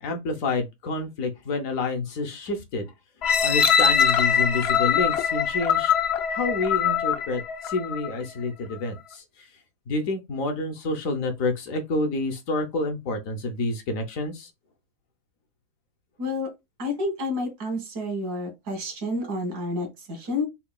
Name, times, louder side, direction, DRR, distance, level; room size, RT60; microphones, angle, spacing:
voice 1, 0.0-2.9 3.4-5.9 6.3-9.5 9.9-14.5, left 2 dB, 65° left, 1.0 m, -28 dB
sound 1, 3.2-8.2 8.7-8.8, left 7 dB, 90° left, 0.5 m, -22 dB
voice 2, 16.8-20.4, left 2 dB, 85° right, 2.1 m, -29 dB
5.6 x 2.3 x 2.2 m
omnidirectional pair, 1.7 m